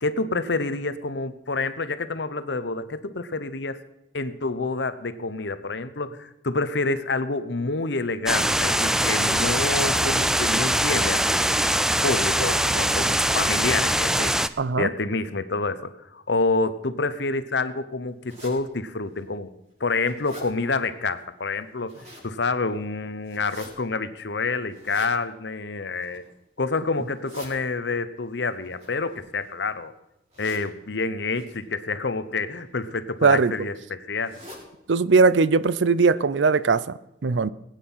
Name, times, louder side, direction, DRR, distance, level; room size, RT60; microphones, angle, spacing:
voice 1, 0.0-3.8 4.1-11.4 11.7-14.3 14.8-19.5 19.8-26.2 26.6-29.9 30.4-34.4, left 3 dB, 70° left, 0.9 m, -28 dB
sound 1, 8.3-14.5, right 1 dB, 5° right, 0.4 m, -22 dB
voice 2, 14.6-14.9 33.2-33.5 34.9-37.5, right 4 dB, 80° right, 0.6 m, -20 dB
sound 2, 18.3-18.5 19.2-19.3 19.7-20.5 21.6-22.3 23.2-23.7 24.7-25.1 25.9-26.3 27.0-27.5 28.6-29.6 30.3-30.7 31.3-31.6 32.6-32.9 33.2-33.3 33.5-33.6 34.2-34.6 35.1-35.2 35.4-35.5 36.1-36.2 36.5-36.6, left 1 dB, 35° right, 5.7 m, -45 dB
20.0 x 9.2 x 5.6 m
head